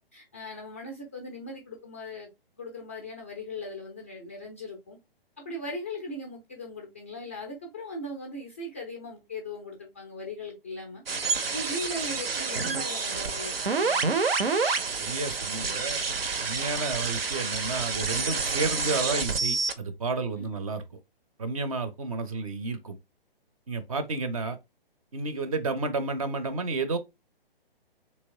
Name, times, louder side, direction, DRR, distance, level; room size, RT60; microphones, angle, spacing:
voice 1, 0.0-2.3 2.6-5.0 5.4-11.0 11.5-14.2 20.4-20.7, left 1 dB, 15° left, 0.4 m, -39 dB
sound 1, 11.1-19.7, right 4 dB, 75° right, 0.7 m, -28 dB
voice 2, 15.0-16.0 16.4-20.8 21.4-23.0 23.7-24.6 25.1-27.0, right 3 dB, 35° right, 0.5 m, -31 dB
3.2 x 2.9 x 2.6 m
figure-of-eight pair, 130°, 30 cm